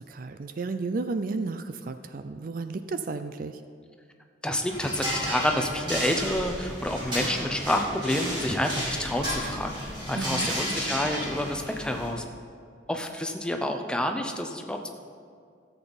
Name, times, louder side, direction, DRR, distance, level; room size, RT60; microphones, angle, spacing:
voice 1, 0.0-3.6 10.1-10.5, right 3 dB, 45° right, 10 dB, 0.4 m, -33 dB
voice 2, 4.4-9.7 10.1-12.2 12.9-14.9, left 1 dB, 5° left, 4 dB, 0.7 m, -28 dB
sound 1, 4.7-12.1, equal, 25° right, 3.2 m, -33 dB
14.0 x 8.0 x 4.1 m, 2.2 s
head